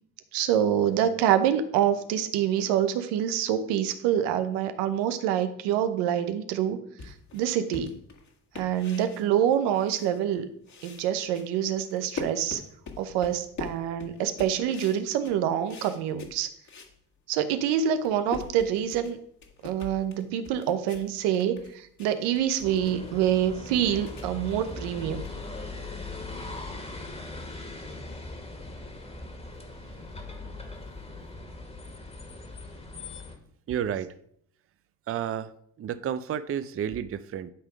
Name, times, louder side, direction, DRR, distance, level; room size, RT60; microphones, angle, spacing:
voice 1, 0.3-7.9 8.6-10.5 10.8-12.6 13.0-16.5 17.3-19.2 19.6-25.2, right 10 dB, 85° right, 10 dB, 0.9 m, -26 dB
sound 1, 7.0-10.4 10.6-17.0 17.4-17.5 17.8-26.0, left 4 dB, 45° left, 1.9 m, -43 dB
sound 2, 22.6-33.4, left 2 dB, 15° left, 1.8 m, -40 dB
voice 2, 33.7-34.1 35.1-35.5 35.8-37.5, right 9 dB, 35° right, 14 dB, 0.5 m, -31 dB
11.0 x 3.7 x 5.0 m, 0.68 s
supercardioid pair, 80°, 40 cm